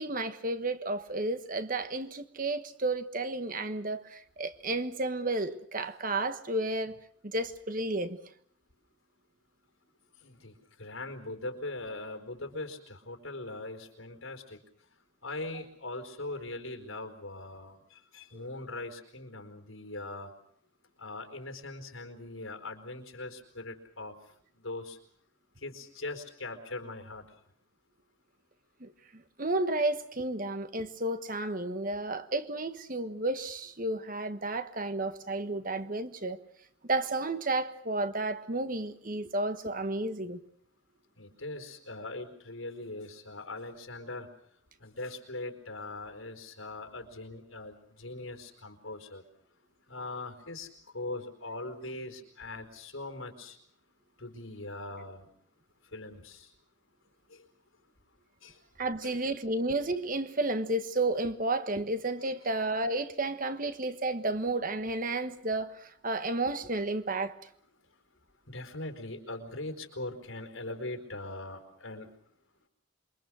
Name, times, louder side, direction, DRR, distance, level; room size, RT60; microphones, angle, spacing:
voice 1, 0.0-6.9 7.2-8.2 28.8-36.4 36.8-40.4 58.8-67.3, right 2 dB, 40° right, 1.4 m, -32 dB
voice 2, 10.2-14.6 15.2-20.3 21.0-24.1 24.6-25.0 25.6-27.3 41.1-44.3 44.8-49.2 49.9-50.7 50.9-53.6 54.2-55.3 55.9-56.5 57.3-57.5 58.4-58.6 59.0-59.1 68.5-72.1, left 2 dB, 85° left, 4.5 m, -41 dB
27.5 x 23.5 x 6.3 m
head